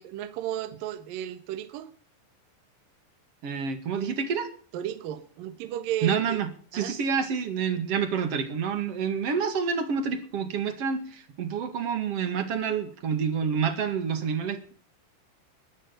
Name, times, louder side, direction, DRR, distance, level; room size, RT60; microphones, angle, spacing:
voice 1, 0.0-1.9 4.7-6.4 6.7-6.9 7.8-7.9, right 11 dB, 65° right, 2.5 m, -34 dB
voice 2, 3.4-4.5 6.0-14.7, right 6 dB, 45° right, 2.3 m, -28 dB
21.5 x 12.5 x 4.0 m
omnidirectional pair, 5.3 m